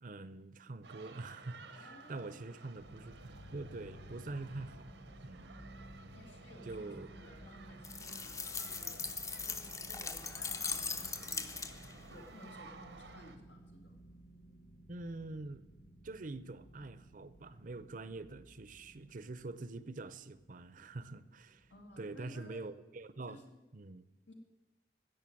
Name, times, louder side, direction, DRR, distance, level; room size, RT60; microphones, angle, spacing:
voice 1, 0.0-4.9 5.2-5.5 6.7-7.1 14.9-15.6 16.0-21.7 22.0-23.4 23.7-24.1, right 2 dB, 50° right, 15 dB, 0.6 m, -45 dB
sound 1, 0.8-13.4, right 4 dB, 85° right, 1.1 m, -55 dB
voice 2, 1.7-2.5 6.1-9.0 9.4-11.6 12.1-14.0 21.7-22.7 23.3-23.6 24.3-24.4, left 1 dB, 90° left, 2 dB, 2.3 m, -57 dB
sound 2, 2.8-22.0, right 1 dB, 50° left, 1.2 m, -56 dB
sound 3, 7.8-12.0, left 5 dB, 20° left, 0.6 m, -40 dB
14.5 x 6.7 x 9.0 m, 1.1 s
head